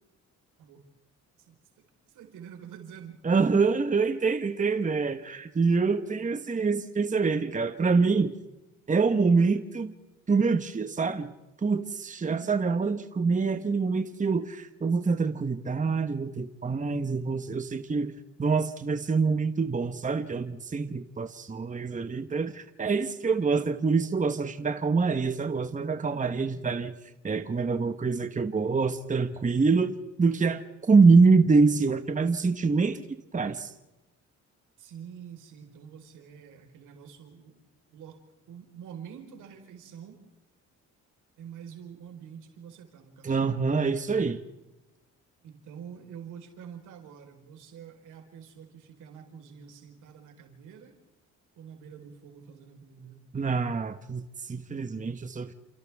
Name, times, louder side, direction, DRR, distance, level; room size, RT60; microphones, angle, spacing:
voice 1, 1.4-3.2 12.2-12.5 34.8-37.6 37.9-38.2 38.5-40.2 41.4-43.9 45.4-51.0 51.6-53.2, right 8 dB, 85° right, 3 dB, 4.4 m, -47 dB
voice 2, 3.2-8.3 8.9-9.9 10.3-11.3 11.6-18.1 18.4-26.9 27.2-33.0 33.3-33.7 43.2-44.4 53.3-55.5, right 4 dB, 25° right, 9 dB, 1.2 m, -25 dB
29.5 x 28.5 x 3.6 m, 1.0 s
cardioid pair, 90°, 30 cm